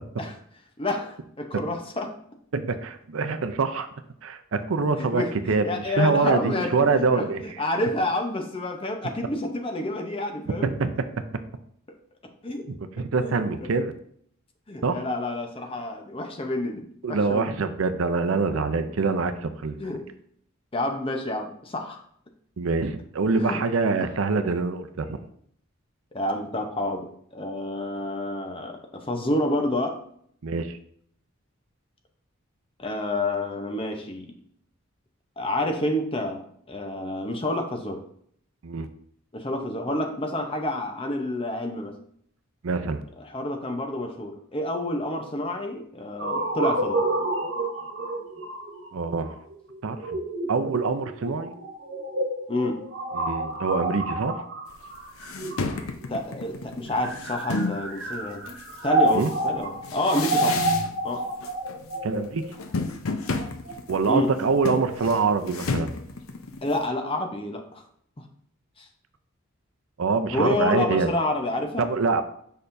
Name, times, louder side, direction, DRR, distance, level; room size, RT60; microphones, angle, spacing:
voice 1, 0.8-2.1 5.0-10.7 12.4-12.7 13.2-13.7 14.7-17.5 19.8-20.0 20.7-22.0 23.4-23.6 24.0-24.1 26.1-28.8 29.1-30.0 32.8-34.3 35.4-38.0 39.3-41.9 43.2-47.0 52.5-52.8 56.1-58.5 58.8-60.6 61.0-61.2 64.1-64.3 66.6-67.8 68.8-68.9 70.3-71.9, left 1 dB, 25° left, 4 dB, 0.8 m, -29 dB
voice 2, 2.5-3.9 4.2-7.4 10.6-10.9 11.2-11.3 12.8-13.9 14.8-15.0 17.0-19.9 22.6-25.2 30.4-30.8 38.6-38.9 42.6-43.0 48.9-49.3 49.8-50.2 50.5-51.5 53.1-54.5 59.1-59.3 62.0-62.4 63.9-65.9 70.0-71.1 71.8-72.2, right 4 dB, 75° right, 9 dB, 0.5 m, -25 dB
sound 1, 46.2-56.0 56.8-63.7, right 1 dB, 60° right, 1.5 m, -29 dB
sound 2, 54.7-54.8 55.2-57.9 58.5-61.1 61.4-61.9 62.2-66.9, left 3 dB, 85° left, 0.7 m, -32 dB
6.6 x 5.5 x 2.6 m, 0.65 s
head